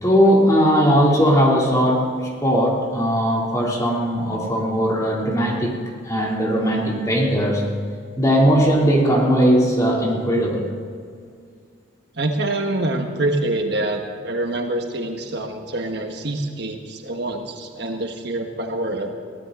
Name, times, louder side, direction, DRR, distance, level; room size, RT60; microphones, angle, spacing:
voice 1, 0.0-5.8 6.0-7.6 8.2-10.6, equal, 15° left, -2 dB, 2.9 m, -18 dB
voice 2, 12.2-19.1, right 2 dB, 55° right, 3 dB, 1.4 m, -25 dB
23.0 x 16.5 x 3.9 m, 2.1 s
head